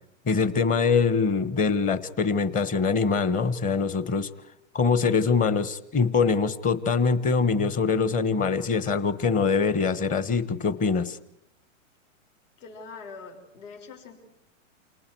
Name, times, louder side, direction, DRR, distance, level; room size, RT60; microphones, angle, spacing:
voice 1, 0.3-4.3 4.7-11.2, left 5 dB, 20° left, 15 dB, 1.2 m, -23 dB
voice 2, 12.6-14.1, left 4 dB, 65° left, 3 dB, 6.3 m, -43 dB
29.0 x 28.0 x 4.7 m, 0.81 s
hypercardioid pair, 130°, 39 cm